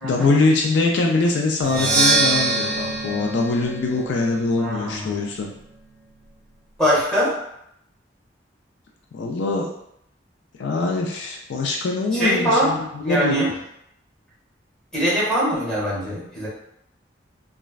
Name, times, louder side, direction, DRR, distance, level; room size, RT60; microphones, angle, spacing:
voice 1, 0.0-5.5 9.1-9.7 10.6-13.5, left 3 dB, 70° left, 1 dB, 0.4 m, -23 dB
Percussion, 1.6-5.4, right 2 dB, 50° right, 0.8 m, -24 dB
voice 2, 4.6-5.1 6.8-7.3 12.1-12.7 13.0-13.5 14.9-16.5, equal, 5° left, -9 dB, 1.2 m, -22 dB
3.1 x 2.4 x 2.3 m, 0.76 s
head